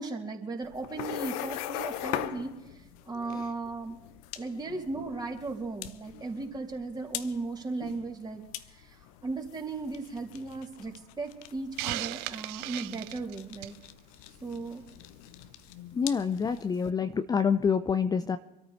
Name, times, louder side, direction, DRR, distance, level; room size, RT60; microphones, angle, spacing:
voice 1, 0.0-4.0 4.3-8.4 8.7-13.8 14.4-14.8, right 3 dB, 20° right, 1 dB, 3.1 m, -36 dB
sound 1, 0.6-16.9, left 13 dB, 60° left, 0.9 m, -42 dB
Hiss, 11.8-13.8, right 19 dB, 50° right, 0.5 m, -36 dB
voice 2, 15.9-18.4, left 6 dB, 20° left, 10 dB, 0.6 m, -27 dB
26.0 x 13.5 x 3.2 m, 0.97 s
figure-of-eight pair, 70°, 21 cm